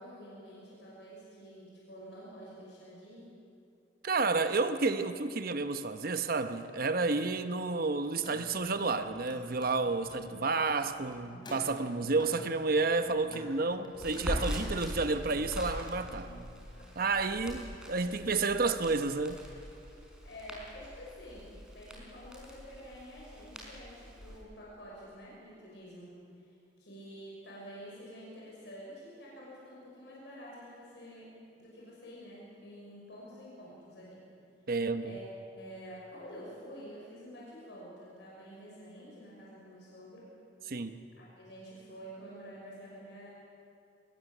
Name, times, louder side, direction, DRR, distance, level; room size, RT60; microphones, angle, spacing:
voice 1, 0.0-3.3 14.7-14.8 16.7-16.9 18.0-18.4 20.2-34.3 35.0-35.2 35.5-40.3 41.2-43.3, equal, 65° left, -5 dB, 5.9 m, -49 dB
voice 2, 4.0-16.3 17.0-19.4 34.7-35.1 40.6-41.0, right 3 dB, 55° right, 9 dB, 0.9 m, -30 dB
sound 1, 8.2-17.2, right 1 dB, 50° left, 5.1 m, -54 dB
Car, 8.2-9.0 9.2-14.3, left 1 dB, 25° left, 4.7 m, -52 dB
Crackle, 13.9-24.4, equal, 5° right, 4.5 m, -42 dB
24.0 x 21.0 x 7.3 m, 2.5 s
head